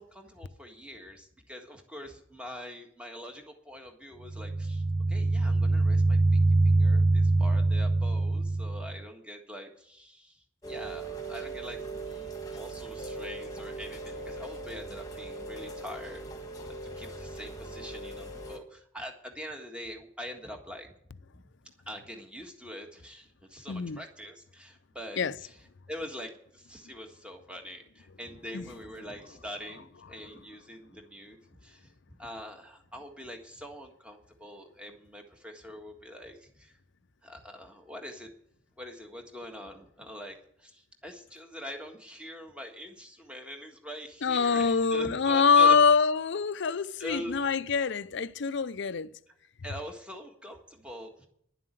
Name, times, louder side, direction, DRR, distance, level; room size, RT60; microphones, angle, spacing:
voice 1, 0.0-4.8 5.1-16.4 17.0-20.9 21.3-21.4 21.9-25.6 25.9-36.7 37.2-38.3 38.8-45.8 47.0-47.6 49.6-51.3, equal, 5° right, 1.6 m, -44 dB
sound 1, 4.2-9.0, right 2 dB, 50° right, 0.8 m, -24 dB
Rain, 10.6-18.6, right 3 dB, 20° left, 1.7 m, -40 dB
voice 2, 23.7-24.0 25.2-25.3 28.5-28.7 44.2-49.1, left 5 dB, 60° left, 0.5 m, -24 dB
11.0 x 7.6 x 9.0 m
head